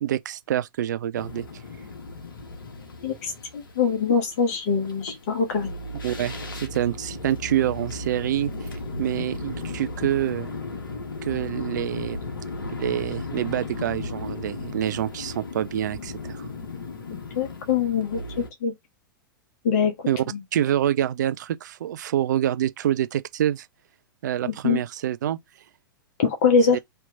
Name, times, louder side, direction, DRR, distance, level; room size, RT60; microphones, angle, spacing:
voice 1, 0.0-1.5 6.0-8.7 9.0-10.5 11.2-12.2 12.8-16.5 20.1-20.2 20.5-23.7 24.2-25.4 26.7-26.8, right 11 dB, 55° right, 0.5 m, -26 dB
sound 1, 1.2-18.5, left 3 dB, 70° left, 1.1 m, -36 dB
voice 2, 3.0-5.7 17.3-18.7 19.6-19.9 24.5-24.8 26.2-26.8, left 6 dB, 45° left, 1.2 m, -23 dB
3.3 x 3.0 x 3.7 m
figure-of-eight pair, 105°, 12 cm